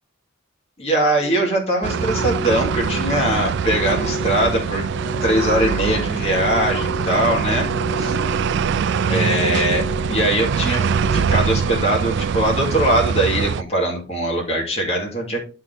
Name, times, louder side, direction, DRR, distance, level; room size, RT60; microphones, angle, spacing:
voice 1, 0.8-4.9 5.2-7.7 8.0-8.1 9.1-15.4, right 1 dB, 30° left, -2 dB, 2.3 m, -21 dB
Organ, 1.2-12.2, left 1 dB, 50° left, 4.8 m, -32 dB
sound 1, 1.8-13.6, right 6 dB, 55° right, 0.3 m, -23 dB
10.5 x 4.3 x 3.8 m, 0.35 s
head